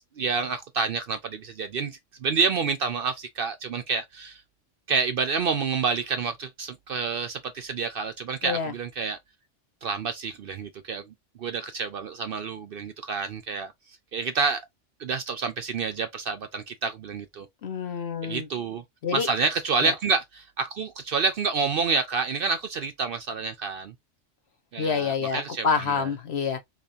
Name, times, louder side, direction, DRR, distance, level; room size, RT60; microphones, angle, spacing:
voice 1, 0.0-4.4 4.9-9.2 9.8-11.0 11.4-13.7 14.1-14.6 15.0-17.5 18.2-18.8 19.1-23.9 24.7-26.1, right 5 dB, 60° right, 0.6 m, -28 dB
voice 2, 17.6-18.5 19.0-19.3 19.8-19.9 24.8-26.6, left 6 dB, 60° left, 1.2 m, -27 dB
4.1 x 2.9 x 2.6 m
omnidirectional pair, 1.3 m